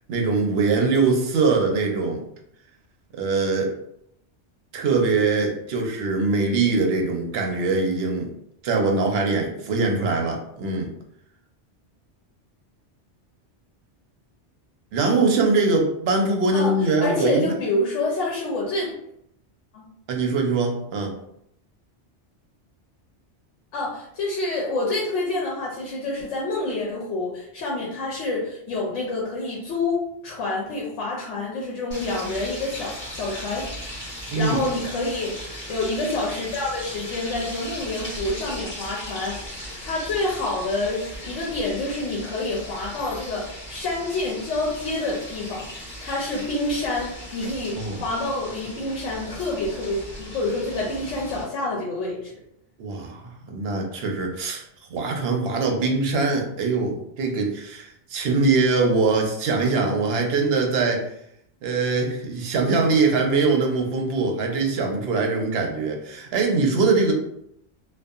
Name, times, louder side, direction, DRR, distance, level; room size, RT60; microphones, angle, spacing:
voice 1, 0.1-2.2 3.1-3.7 4.7-8.3 8.6-10.9 14.9-17.5 20.1-21.1 34.3-34.6 47.8-48.0 52.8-54.6 54.9-61.1 61.6-67.1, right 3 dB, 65° right, 2 dB, 0.8 m, -22 dB
voice 2, 17.0-18.9 19.7-19.8 23.7-52.3, left 2 dB, 90° left, -3 dB, 1.0 m, -28 dB
sound 1, 31.9-51.4, equal, 10° left, 1.3 m, -38 dB
2.6 x 2.4 x 2.3 m, 0.74 s
omnidirectional pair, 1.2 m